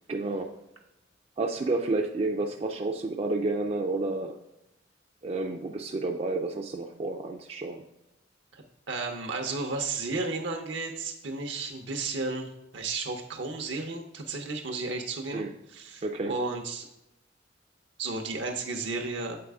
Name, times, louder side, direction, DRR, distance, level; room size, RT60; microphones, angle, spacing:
voice 1, 0.1-0.5 1.4-4.4 5.2-7.8 15.3-15.5 16.0-16.3, right 2 dB, 35° right, 3 dB, 0.4 m, -30 dB
voice 2, 8.5-16.9 18.0-19.4, right 3 dB, 75° right, 3 dB, 0.8 m, -33 dB
7.6 x 4.1 x 3.5 m, 0.88 s
head